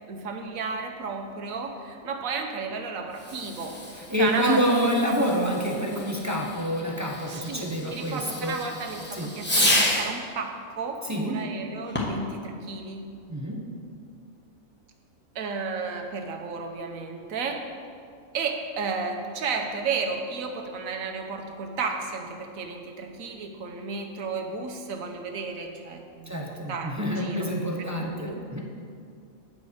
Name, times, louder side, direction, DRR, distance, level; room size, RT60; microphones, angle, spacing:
voice 1, 0.1-5.2 7.3-13.1 15.3-17.6 18.3-27.6 28.0-28.4, right 4 dB, 85° right, 3 dB, 1.3 m, -33 dB
Fireworks, 3.1-10.2 11.8-12.3, left 1 dB, 10° left, 1.1 m, -30 dB
voice 2, 4.1-8.6 9.1-9.3 11.0-11.4 13.3-13.6 26.3-28.6, equal, 15° right, -2 dB, 0.7 m, -27 dB
8.7 x 5.2 x 6.4 m, 2.3 s
omnidirectional pair, 1.4 m